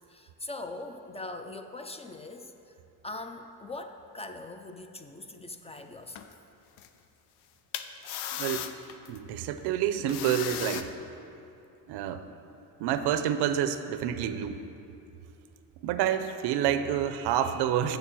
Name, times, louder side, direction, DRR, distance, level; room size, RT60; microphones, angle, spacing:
voice 1, 0.1-2.5 3.0-6.3, left 2 dB, 15° left, 6 dB, 0.4 m, -41 dB
sound 1, 6.1-6.3 6.8-6.9 7.7-9.2 10.1-10.8, left 10 dB, 85° left, 0.6 m, -36 dB
voice 2, 8.3-8.7 9.1-10.9 11.9-12.3 12.8-14.7 15.8-18.0, right 10 dB, 85° right, 10 dB, 0.6 m, -28 dB
7.0 x 6.3 x 7.3 m, 2.7 s
cardioid pair, 110°, 38 cm